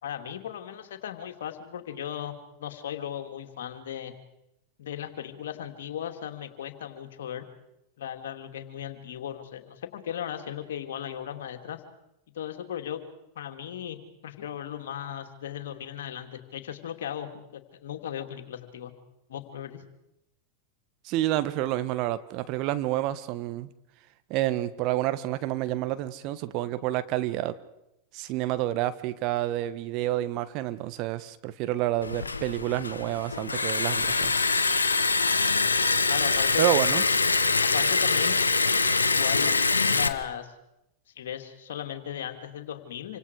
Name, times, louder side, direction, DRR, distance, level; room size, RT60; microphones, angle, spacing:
voice 1, 0.0-4.1 4.8-7.4 8.0-11.8 12.3-13.0 13.3-14.0 14.2-18.9 19.3-19.8 36.1-36.6 37.6-38.4 39.1-39.5 39.9-40.5 41.2-43.2, left 10 dB, 65° left, 6 dB, 2.8 m, -36 dB
voice 2, 21.0-23.7 24.3-27.5 28.1-34.6 36.6-37.0, right 14 dB, 45° right, 12 dB, 1.4 m, -29 dB
Liquid, 32.0-40.1, left 4 dB, 85° left, 1.2 m, -24 dB
27.5 x 25.5 x 4.9 m, 0.88 s
figure-of-eight pair, 90°, 0 cm